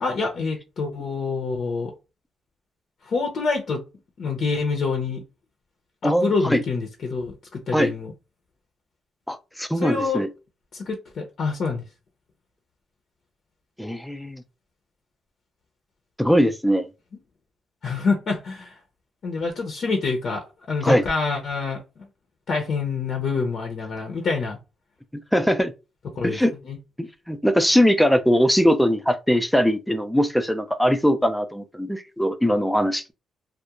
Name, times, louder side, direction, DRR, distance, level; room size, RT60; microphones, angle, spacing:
voice 1, 0.0-1.9 3.1-3.8 4.2-5.2 6.0-8.1 9.8-10.2 10.7-11.8 17.8-18.7 19.2-21.8 22.5-24.6 26.2-26.4 26.7-26.8, left 4 dB, 55° left, 0.6 m, -26 dB
voice 2, 6.0-6.6 7.7-7.9 9.3-10.3 13.8-14.4 16.2-16.9 20.8-21.0 25.1-25.7 26.2-26.5 27.0-33.1, equal, 5° left, 0.4 m, -21 dB
2.3 x 2.1 x 2.8 m
cardioid pair, 90°, 0 cm